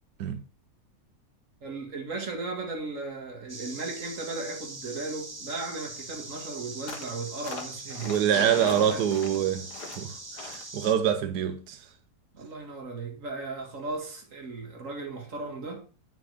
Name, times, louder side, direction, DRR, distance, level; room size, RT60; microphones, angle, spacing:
voice 1, 1.6-8.3 8.7-9.0 10.7-11.0 12.3-15.8, right 3 dB, 50° right, 2.4 m, -36 dB
sound 1, 3.5-10.9, right 2 dB, 20° right, 0.8 m, -42 dB
sound 2, 6.9-7.1 7.4-8.2 8.6-9.4 9.7-10.0 10.4-10.7, left 4 dB, 85° left, 2.0 m, -41 dB
voice 2, 8.0-9.7 10.0-11.8, right 9 dB, 90° right, 1.3 m, -26 dB
sound 3, 8.3-10.2, left 5 dB, 65° left, 1.7 m, -38 dB
9.1 x 6.0 x 4.8 m
omnidirectional pair, 1.7 m